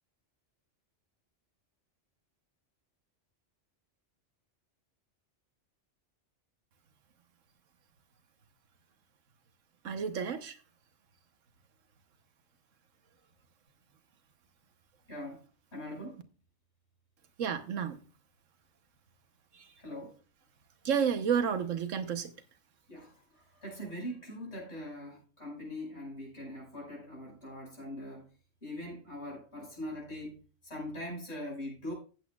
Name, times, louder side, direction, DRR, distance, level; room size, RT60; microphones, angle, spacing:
voice 1, 9.8-10.6 17.4-18.0 19.5-19.6 20.8-22.3, right 7 dB, 90° right, 1.4 m, -31 dB
voice 2, 15.1-15.4 15.7-16.3 19.8-20.2 22.9-28.3 28.6-31.9, left 1 dB, 60° left, 5.9 m, -42 dB
15.0 x 8.3 x 2.4 m
omnidirectional pair, 1.3 m